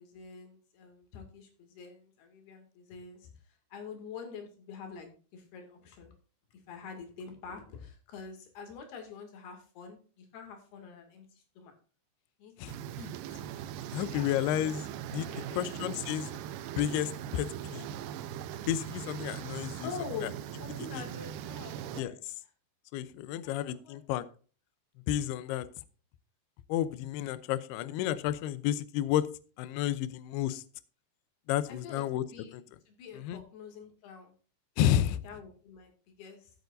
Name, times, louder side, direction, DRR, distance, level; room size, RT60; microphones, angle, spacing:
voice 1, 0.0-6.2 6.7-11.7 12.4-12.5 13.0-13.4 13.9-14.3 15.3-15.7 19.8-20.3 20.6-22.2 23.4-24.0 31.7-32.5 32.9-34.3 35.2-36.5, left 5 dB, 60° left, 4 dB, 3.9 m, -46 dB
sound 1, 12.7-22.0, right 10 dB, 85° right, 2.3 m, -40 dB
voice 2, 13.9-14.9 15.1-15.3 15.5-16.4 16.8-17.9 18.7-19.9 20.2-20.3 22.0-22.1 22.9-24.2 25.1-25.7 26.7-29.3 29.6-30.6 31.5-32.2 33.2-33.4 34.8-35.2, left 12 dB, 85° left, 14 dB, 2.3 m, -31 dB
15.0 x 8.1 x 2.6 m, 0.38 s
omnidirectional pair, 5.4 m